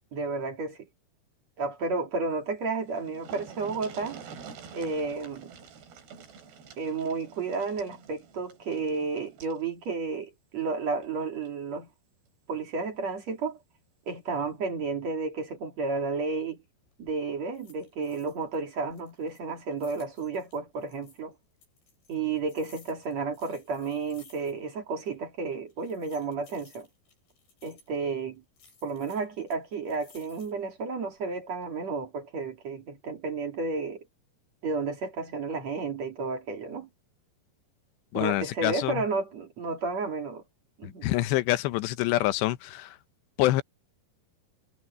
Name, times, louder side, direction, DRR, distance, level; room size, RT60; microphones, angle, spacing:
voice 1, 0.1-0.9 1.6-4.2 4.7-5.5 6.8-11.9 12.5-13.6 14.1-16.6 17.0-21.3 22.1-26.9 27.6-28.4 28.8-34.0 34.6-36.9 38.1-40.4 40.8-41.1, right 4 dB, 45° right, 3.4 m, -32 dB
sound 1, 2.5-2.6 2.8-9.6 10.9-11.1 11.5-11.6, right 6 dB, 75° right, 5.3 m, -47 dB
sound 2, 16.8-17.2 17.5-18.6 18.9-21.2 21.6-24.8 25.0-25.1 25.7-28.0 28.6-30.7 31.2-31.7, left 5 dB, 70° left, 9.3 m, -59 dB
voice 2, 38.1-39.0 40.8-42.9 43.4-43.6, left 16 dB, 85° left, 3.0 m, -26 dB
omnidirectional pair, 4.9 m